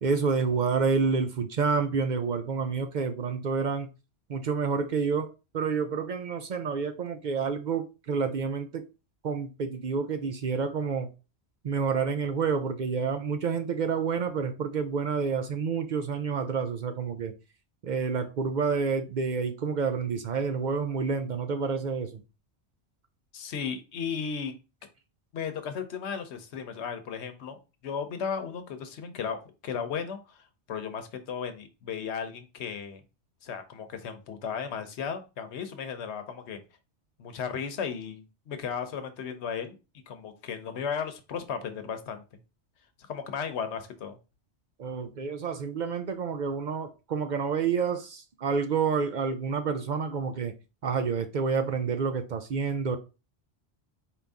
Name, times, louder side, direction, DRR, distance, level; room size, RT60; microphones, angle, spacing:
voice 1, 0.0-3.9 4.3-5.3 5.5-8.8 9.2-11.1 11.6-17.3 17.8-22.2 44.8-50.5 50.8-53.0, right 5 dB, 55° right, 0.6 m, -29 dB
voice 2, 23.3-24.5 25.3-33.0 33.4-36.6 37.2-39.8 40.1-42.2 43.1-44.2, left 7 dB, 80° left, 1.0 m, -35 dB
4.5 x 2.6 x 3.4 m
omnidirectional pair, 1.1 m